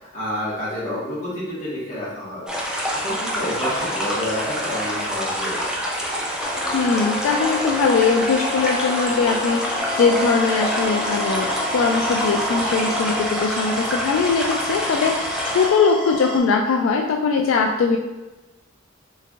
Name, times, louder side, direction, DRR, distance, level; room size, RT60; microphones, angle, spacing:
voice 1, 0.1-5.7, left 1 dB, 40° left, -8 dB, 1.4 m, -29 dB
sound 1, 2.5-15.7, equal, 5° right, 0.4 m, -27 dB
sound 2, 6.4-13.2, left 1 dB, 70° left, 1.4 m, -29 dB
voice 2, 6.7-18.0, left 5 dB, 85° left, 2 dB, 0.3 m, -21 dB
sound 3, 9.8-16.4, left 1 dB, 35° right, 0.9 m, -31 dB
3.3 x 3.2 x 2.4 m, 1.1 s
head